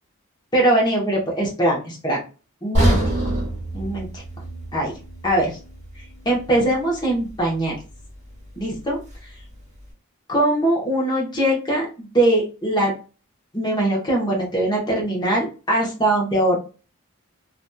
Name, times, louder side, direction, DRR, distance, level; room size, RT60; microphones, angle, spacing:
voice 1, 0.5-2.2 2.6-3.0 3.7-4.2 4.7-4.9 5.2-5.6 6.2-7.8 8.6-9.0 10.3-12.9 13.5-16.6, right 1 dB, 20° left, -2 dB, 1.0 m, -21 dB
sound 1, 2.7-6.8 7.2-7.3 7.9-8.0, right 1 dB, 35° right, 1.4 m, -25 dB
2.9 x 2.5 x 2.2 m, 0.34 s
head